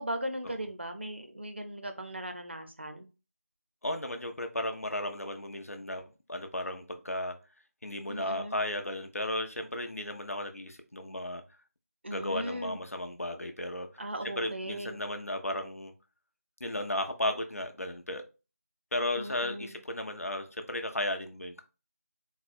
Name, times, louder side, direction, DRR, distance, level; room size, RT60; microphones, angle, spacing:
voice 1, 0.0-3.1 8.1-8.6 12.0-12.8 14.0-15.0 19.2-19.8, right 1 dB, 45° right, 0.6 m, -38 dB
voice 2, 3.8-7.4 7.8-11.4 12.1-14.0 14.4-15.9 16.6-18.2 18.9-21.6, left 1 dB, 65° left, 0.9 m, -34 dB
4.1 x 2.2 x 4.2 m
figure-of-eight pair, 170°, 8 cm